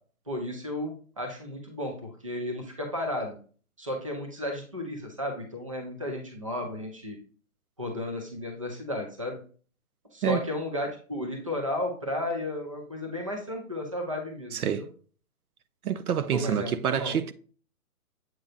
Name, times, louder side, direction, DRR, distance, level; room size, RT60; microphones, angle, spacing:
voice 1, 0.3-3.4 3.8-7.2 7.8-9.4 10.1-14.9 16.3-17.2, left 1 dB, 25° right, 0.5 m, -33 dB
voice 2, 14.5-14.9 15.8-17.3, right 8 dB, 75° right, 0.7 m, -27 dB
7.6 x 5.3 x 2.4 m
hypercardioid pair, 175°, 44 cm